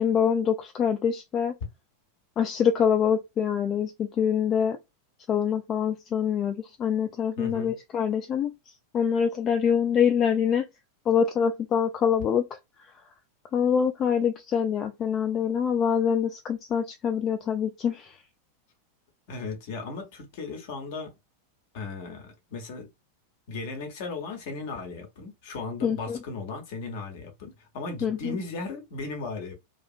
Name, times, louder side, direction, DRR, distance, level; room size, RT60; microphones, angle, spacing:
voice 1, 0.0-1.5 2.4-4.8 5.3-8.5 8.9-10.6 11.1-12.4 13.5-18.1 25.8-26.2 28.0-28.4, left 7 dB, 30° left, 0.3 m, -25 dB
voice 2, 7.4-7.7 19.3-21.1 21.7-22.9 23.5-29.5, left 3 dB, 50° left, 0.9 m, -36 dB
2.7 x 2.3 x 2.4 m
figure-of-eight pair, 90°, 0 cm